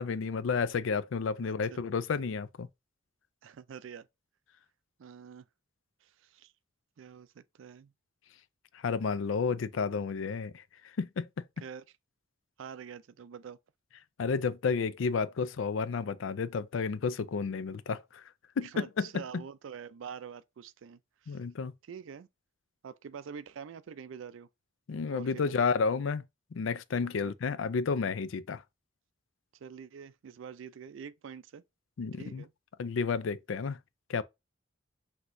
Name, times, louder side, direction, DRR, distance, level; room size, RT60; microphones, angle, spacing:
voice 1, 0.0-2.7 8.7-10.6 11.0-11.3 14.2-18.2 18.6-19.4 21.3-21.7 24.9-26.2 26.5-28.6 32.0-32.4 32.8-33.8 34.1-34.2, left 5 dB, 85° left, 0.4 m, -31 dB
voice 2, 1.4-1.8 3.4-4.1 5.0-5.5 6.0-6.5 7.0-7.9 11.6-11.8 12.6-13.6 18.6-21.4 21.8-22.3 22.8-24.5 25.1-25.6 27.0-27.3 29.5-31.6 32.1-32.5, right 7 dB, 80° right, 0.4 m, -46 dB
6.1 x 2.8 x 2.6 m
head